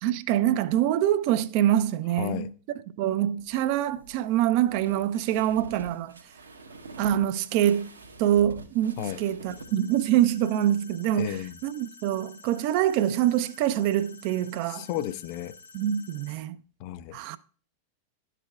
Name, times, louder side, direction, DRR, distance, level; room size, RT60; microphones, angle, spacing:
voice 1, 0.0-2.5 3.0-6.2 7.0-7.9 8.2-14.9 15.7-16.6 17.1-17.4, right 11 dB, 45° right, 0.4 m, -25 dB
voice 2, 2.2-2.5 9.0-9.2 11.2-11.6 14.7-15.6 16.8-17.2, left 12 dB, 45° left, 0.4 m, -33 dB
sound 1, 3.4-9.7, right 2 dB, 75° right, 1.0 m, -46 dB
sound 2, 9.5-16.3, left 4 dB, 80° left, 1.5 m, -50 dB
12.0 x 4.9 x 2.3 m
figure-of-eight pair, 90°, 0 cm